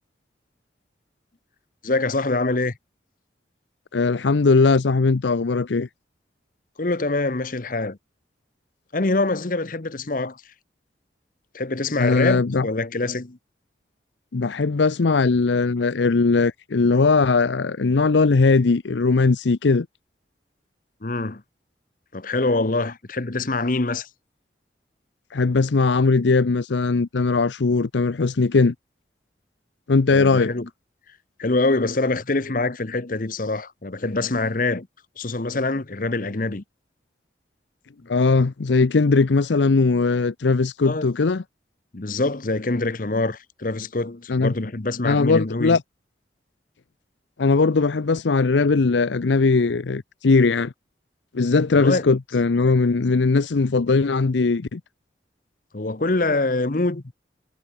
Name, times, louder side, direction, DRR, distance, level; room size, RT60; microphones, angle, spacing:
voice 1, 1.8-2.8 6.8-8.0 8.9-10.5 11.5-13.4 21.0-21.4 22.1-24.1 30.1-30.7 31.1-34.9 35.2-36.6 40.8-41.1 41.9-45.8 51.7-52.1 55.7-57.0, left 2 dB, 50° left, 0.9 m, -25 dB
voice 2, 3.9-5.9 12.0-12.6 14.3-19.9 25.3-28.7 29.9-30.5 38.1-41.4 44.3-44.5 45.0-45.8 47.4-50.7 51.3-54.8, left 4 dB, 75° left, 0.6 m, -19 dB
head